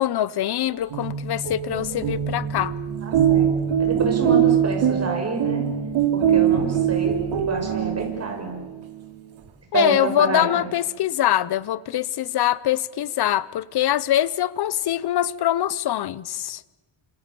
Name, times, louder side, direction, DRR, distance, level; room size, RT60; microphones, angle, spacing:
voice 1, 0.0-2.7 9.7-16.6, left 12 dB, 50° left, 0.9 m, -23 dB
sound 1, 0.7-8.4, right 9 dB, 70° right, 3.6 m, -22 dB
voice 2, 3.1-3.5 3.8-5.7 6.1-7.2 7.5-8.6 9.7-10.5, right 3 dB, 30° right, 6.6 m, -28 dB
29.0 x 26.5 x 7.0 m
cardioid pair, 150°, 49 cm